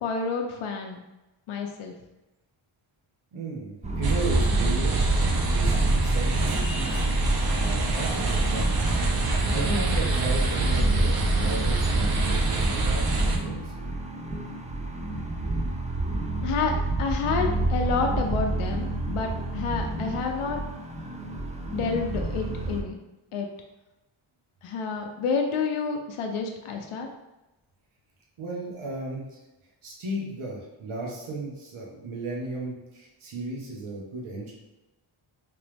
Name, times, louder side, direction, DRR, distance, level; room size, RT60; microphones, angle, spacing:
voice 1, 0.0-1.0 1.5-1.9 16.4-16.7 17.0-20.6 21.7-23.0 23.3-23.5 24.6-27.1, left 5 dB, 80° left, 2 dB, 0.6 m, -29 dB
voice 2, 3.3-8.8 9.5-13.7 28.4-29.4 29.8-34.5, right 2 dB, 75° right, -3 dB, 1.0 m, -35 dB
sound 1, 3.8-22.8, right 2 dB, 15° right, 0.4 m, -29 dB
sound 2, 4.0-13.4, right 2 dB, 45° right, 0.7 m, -25 dB
3.4 x 3.0 x 3.3 m, 0.99 s
wide cardioid pair, 85°, 50 cm